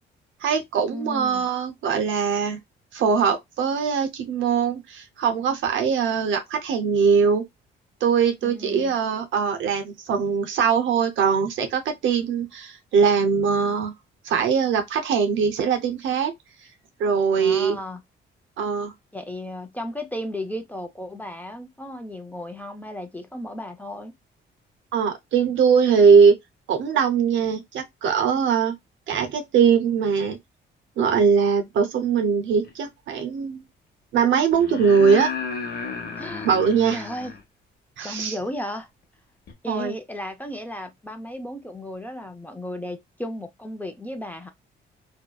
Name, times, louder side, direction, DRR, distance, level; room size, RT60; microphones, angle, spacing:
voice 1, 0.4-2.6 2.9-7.4 8.0-13.9 14.2-16.3 17.0-17.8 18.6-18.9 24.9-26.4 26.7-28.8 29.1-30.4 31.0-33.6 34.1-35.3 36.4-37.0 38.0-38.3 39.7-39.9, right 6 dB, 75° right, 0.7 m, -21 dB
voice 2, 0.9-1.5 8.4-8.9 17.4-18.0 19.1-24.1 36.2-36.5 36.9-37.3 38.0-38.9 39.6-44.5, left 1 dB, 10° left, 0.5 m, -34 dB
sound 1, 32.6-32.7 34.5-37.4 39.5-39.6, left 5 dB, 50° left, 0.9 m, -33 dB
2.7 x 2.1 x 2.3 m
cardioid pair, 90°, 20 cm